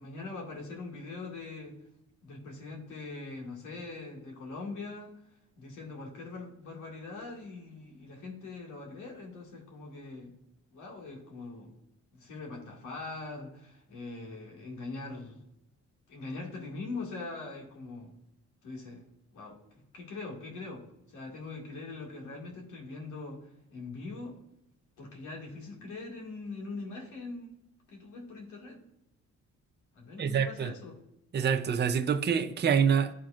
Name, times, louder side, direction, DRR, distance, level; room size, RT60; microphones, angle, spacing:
voice 1, 0.0-1.8 2.2-5.1 5.6-10.4 10.7-11.7 12.1-15.4 16.1-18.1 18.6-19.0 19.3-19.6 19.9-24.4 25.0-27.6 27.9-28.8 29.9-31.0, left 3 dB, 85° left, 2.2 m, -42 dB
voice 2, 30.2-30.7 31.3-33.1, right 7 dB, 35° right, 0.6 m, -26 dB
12.5 x 4.3 x 2.5 m
cardioid pair, 90°, 30 cm